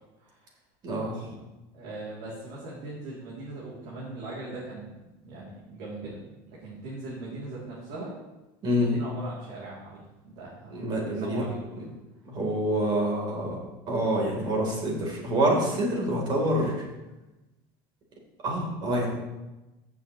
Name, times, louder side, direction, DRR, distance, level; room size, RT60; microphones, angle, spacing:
voice 1, 0.8-1.3 8.6-8.9 10.7-11.5 12.3-13.6 13.9-16.8 18.4-19.1, right 1 dB, 45° right, -1 dB, 3.7 m, -26 dB
voice 2, 1.7-6.2 6.5-8.1 8.7-10.8 11.2-11.7, right 2 dB, 70° right, -7 dB, 3.1 m, -40 dB
14.5 x 7.0 x 3.2 m, 1.0 s
supercardioid pair, 120°, 11 cm